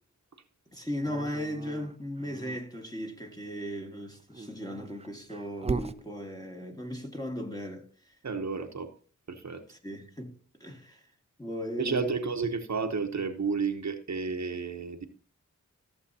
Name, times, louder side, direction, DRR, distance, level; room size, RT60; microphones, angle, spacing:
voice 1, 0.7-8.2 9.7-11.1 11.4-12.3, equal, 10° left, 1.7 m, -37 dB
Dog, 1.0-2.6 4.2-6.0, right 4 dB, 20° right, 0.4 m, -37 dB
voice 2, 8.2-8.9 9.3-9.6 11.8-15.1, right 4 dB, 60° right, 1.0 m, -31 dB
14.5 x 7.1 x 2.8 m
wide cardioid pair, 70°, 31 cm